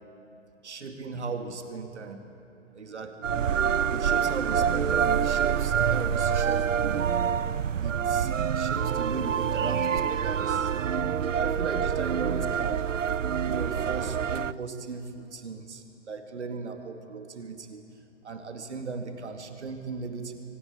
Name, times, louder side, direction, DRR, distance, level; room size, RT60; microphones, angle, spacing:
voice 1, 0.6-2.2 2.7-3.3 3.9-7.1 7.8-8.3 8.6-12.9 13.4-17.8 18.2-20.3, right 4 dB, 65° right, 6 dB, 2.4 m, -37 dB
sound 1, 3.2-14.5, right 8 dB, 85° right, 0.6 m, -26 dB
24.0 x 19.5 x 8.4 m, 2.7 s
figure-of-eight pair, 135°, 37 cm